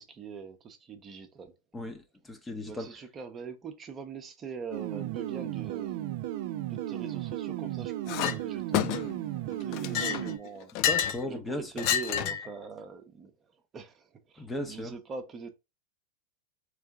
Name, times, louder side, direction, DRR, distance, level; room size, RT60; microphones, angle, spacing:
voice 1, 0.0-1.5 2.7-6.2 6.7-8.9 9.4-10.7 11.3-13.3 13.7-15.5, right 5 dB, 30° right, 0.8 m, -43 dB
voice 2, 1.7-2.9 10.9-11.9 14.4-14.9, left 1 dB, 15° left, 0.8 m, -36 dB
sound 1, 4.7-10.4, right 13 dB, 55° right, 0.4 m, -35 dB
Chink clink, 8.1-8.4 8.7-9.2 9.7-11.2 11.8-12.5, left 10 dB, 50° left, 0.4 m, -29 dB
3.6 x 3.3 x 3.5 m
figure-of-eight pair, 95°, 0 cm